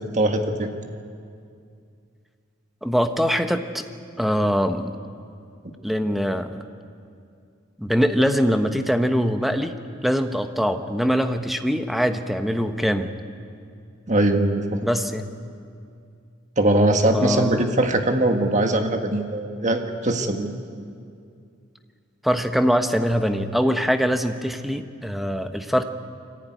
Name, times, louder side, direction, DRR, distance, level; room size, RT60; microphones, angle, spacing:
voice 1, 0.1-0.7 14.1-14.8 16.6-20.5, right 1 dB, 35° right, 5 dB, 1.6 m, -21 dB
voice 2, 2.8-3.8 4.2-4.9 5.8-6.6 7.8-9.7 10.0-13.1 14.8-15.3 17.1-17.7 22.2-25.8, equal, ahead, 7 dB, 0.9 m, -23 dB
24.0 x 15.0 x 9.3 m, 2.4 s
head